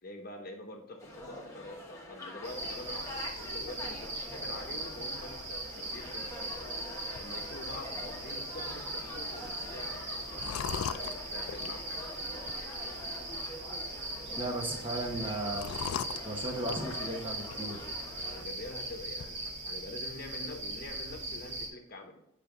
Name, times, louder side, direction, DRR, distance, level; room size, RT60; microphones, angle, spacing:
voice 1, 0.0-6.6 7.1-12.2 18.2-22.3, left 1 dB, 45° left, 3 dB, 1.0 m, -46 dB
sound 1, 1.0-18.4, left 2 dB, 15° left, 1.2 m, -45 dB
sound 2, 2.4-21.7, right 1 dB, 55° right, 1.9 m, -39 dB
sound 3, 7.2-19.3, left 7 dB, 90° left, 0.4 m, -44 dB
voice 2, 14.4-15.7 16.2-17.8, right 1 dB, 25° right, -1 dB, 1.3 m, -36 dB
7.8 x 5.1 x 3.8 m, 0.79 s
head